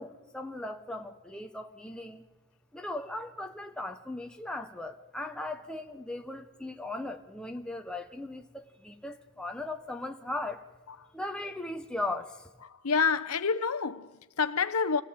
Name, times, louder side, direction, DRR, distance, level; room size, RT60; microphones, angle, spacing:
voice 1, 0.0-2.2 2.7-10.6 11.1-12.5, left 2 dB, 5° left, 0.9 m, -38 dB
voice 2, 12.6-15.0, left 5 dB, 90° left, 1.0 m, -28 dB
27.0 x 17.0 x 8.9 m
head